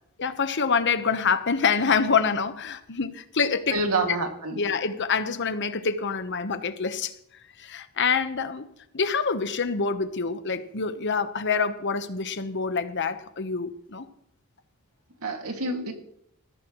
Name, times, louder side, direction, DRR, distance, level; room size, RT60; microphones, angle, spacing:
voice 1, 0.2-3.8 4.1-4.2 4.6-7.1 7.6-8.7 8.9-14.0, left 5 dB, 55° left, 10 dB, 1.0 m, -26 dB
voice 2, 3.7-4.6 15.2-15.9, right 2 dB, 85° right, 3 dB, 2.2 m, -27 dB
20.0 x 14.5 x 3.1 m, 0.75 s
head